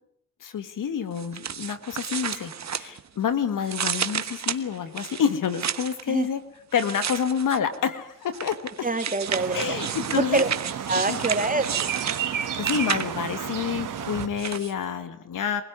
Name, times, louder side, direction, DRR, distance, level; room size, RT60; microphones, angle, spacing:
voice 1, 0.4-6.4 6.7-8.9 9.5-10.5 11.1-11.2 12.6-15.6, left 7 dB, 75° left, 11 dB, 2.0 m, -28 dB
sound 1, 1.2-3.3 3.6-6.0 6.7-7.8 8.3-13.3 14.0-14.7, right 7 dB, 60° right, 1.3 m, -32 dB
voice 2, 8.8-9.7 10.1-10.5 10.9-11.7, right 3 dB, 25° right, 7 dB, 2.8 m, -25 dB
sound 2, 9.3-14.3, right 9 dB, 75° right, 2.1 m, -32 dB
24.0 x 16.5 x 9.7 m, 0.74 s
cardioid pair, 55°, 32 cm